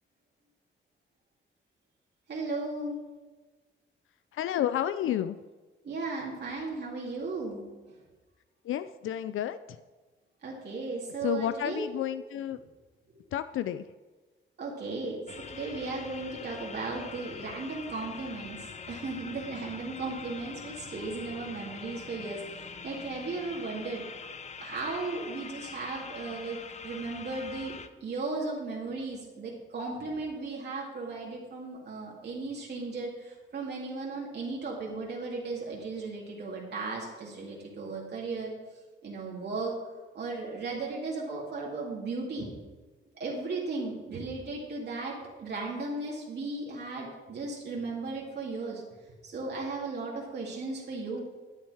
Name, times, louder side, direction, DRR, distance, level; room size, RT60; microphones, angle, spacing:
voice 1, 2.3-3.0 5.8-7.6 10.4-11.9 13.1-13.2 14.6-15.2 15.5-24.0 24.6-26.6 26.8-27.7 28.0-38.5 39.0-39.7 40.1-42.5 43.1-51.2, right 3 dB, 55° right, -3 dB, 2.2 m, -36 dB
voice 2, 4.3-5.4 8.6-9.8 11.2-12.6 13.3-13.9, left 11 dB, 80° left, 12 dB, 0.4 m, -31 dB
sound 1, 15.3-27.9, left 5 dB, 35° left, 0.6 m, -44 dB
12.0 x 8.5 x 4.8 m, 1.3 s
wide cardioid pair, 140°, 21 cm